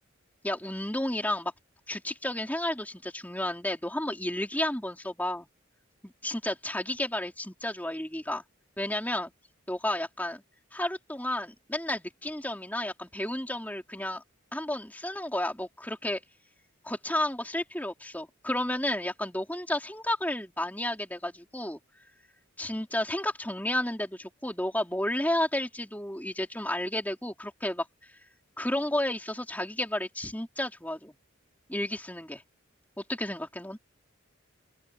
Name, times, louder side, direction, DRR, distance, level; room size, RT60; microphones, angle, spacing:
voice 1, 0.4-1.5 1.9-5.5 6.0-8.4 8.8-9.3 9.7-10.4 10.7-14.2 14.5-16.2 16.8-21.8 22.6-27.9 28.6-31.1 31.7-32.4 33.1-33.8, left 1 dB, 10° left, 3.7 m, -32 dB
open air
head